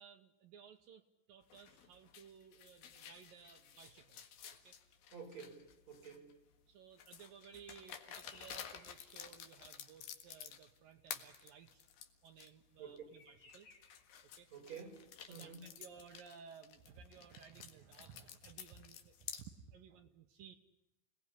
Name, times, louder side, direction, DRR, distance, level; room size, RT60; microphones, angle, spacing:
voice 1, 0.0-4.2 4.6-4.8 6.7-11.9 12.2-13.7 14.2-14.5 15.3-20.6, right 7 dB, 70° right, 6 dB, 2.3 m, -58 dB
sound 1, 1.5-6.3 7.0-10.8 11.1-12.5 13.0-13.1 13.5-19.4, left 8 dB, 65° left, 3.3 m, -52 dB
voice 2, 5.1-6.3 12.8-13.0 14.5-15.7, right 6 dB, 35° right, 1 dB, 6.5 m, -51 dB
sound 2, 7.9-9.3 13.1-14.1, left 3 dB, 45° left, 6.3 m, -63 dB
29.0 x 19.0 x 10.0 m, 0.94 s
omnidirectional pair, 5.3 m